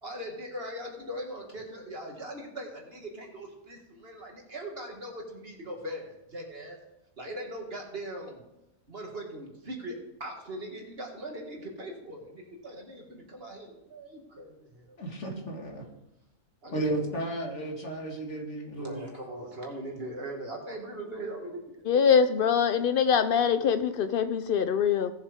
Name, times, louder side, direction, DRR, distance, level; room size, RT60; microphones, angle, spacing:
voice 1, 0.0-6.8 7.2-8.4 8.9-15.0 16.6-16.8 18.8-21.6 21.9-22.2 22.4-22.8, right 1 dB, 40° right, 1 dB, 2.1 m, -40 dB
voice 2, 15.0-15.8 16.7-19.1, right 1 dB, 50° left, 0 dB, 2.2 m, -33 dB
voice 3, 21.9-25.1, left 7 dB, 85° left, 10 dB, 0.4 m, -23 dB
17.5 x 7.3 x 3.6 m, 0.90 s
omnidirectional pair, 1.5 m